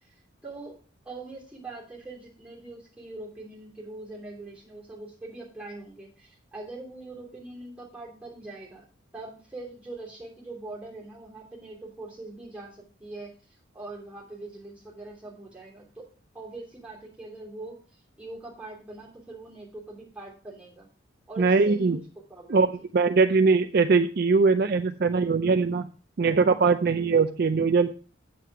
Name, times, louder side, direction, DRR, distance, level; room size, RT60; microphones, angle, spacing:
voice 1, 0.0-0.8 1.0-8.9 9.1-13.3 13.7-16.0 16.3-20.9 21.3-22.0 22.3-22.6, right 2 dB, 5° right, -4 dB, 2.9 m, -42 dB
voice 2, 21.4-22.0 22.5-22.7 22.9-25.9 26.2-27.9, right 4 dB, 50° right, 9 dB, 0.4 m, -21 dB
8.3 x 7.6 x 4.6 m, 0.37 s
head